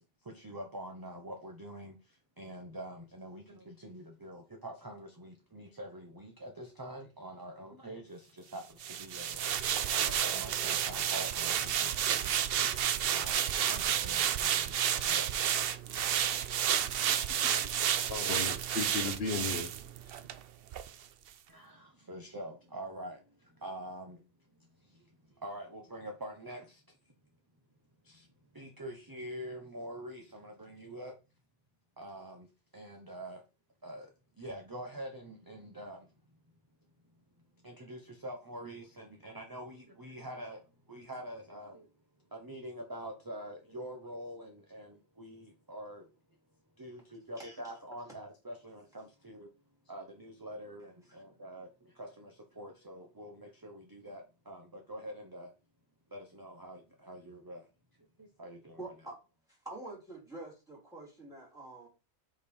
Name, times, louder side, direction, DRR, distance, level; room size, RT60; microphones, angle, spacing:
voice 1, 0.2-15.4 21.5-24.2 24.6-26.8 28.0-28.3 28.5-31.1 32.0-32.5 32.7-33.4 33.8-34.1 34.4-36.1 37.6-40.6 40.9-41.9 42.3-46.1 46.8-49.5 49.9-55.5 56.1-57.7 58.2-58.9, right 1 dB, 20° right, 0.9 m, -46 dB
sound 1, 8.8-20.4 20.7-20.9, right 9 dB, 65° right, 0.7 m, -31 dB
voice 2, 17.4-19.7, left 4 dB, 60° left, 1.2 m, -36 dB
voice 3, 58.8-59.2 59.5-61.9, right 2 dB, 5° right, 3.4 m, -46 dB
5.2 x 5.0 x 4.3 m
omnidirectional pair, 1.2 m